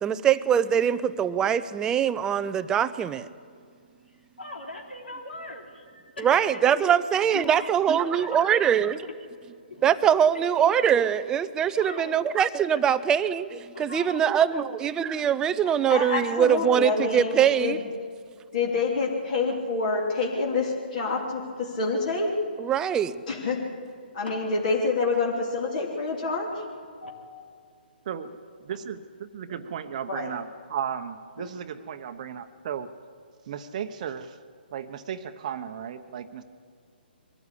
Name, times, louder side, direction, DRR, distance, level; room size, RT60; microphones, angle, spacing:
voice 1, 0.0-3.3 6.2-9.0 9.8-17.8 22.6-23.2, right 8 dB, 10° right, 14 dB, 0.5 m, -23 dB
voice 2, 4.4-7.0 7.3-8.7 9.7-9.8 10.3-10.6 11.7-12.1 13.7-14.6 24.2-24.4 27.0-27.4 31.4-31.5, left 2 dB, 85° left, 1 dB, 3.3 m, -40 dB
voice 3, 15.6-17.8 18.5-22.3 23.3-23.6 24.1-26.6 30.1-30.3, left 3 dB, 50° left, -1 dB, 3.1 m, -27 dB
voice 4, 28.0-32.9 33.5-34.4 34.7-36.4, right 8 dB, 45° right, 8 dB, 0.9 m, -35 dB
22.5 x 14.5 x 8.4 m, 2.2 s
hypercardioid pair, 145°, 6 cm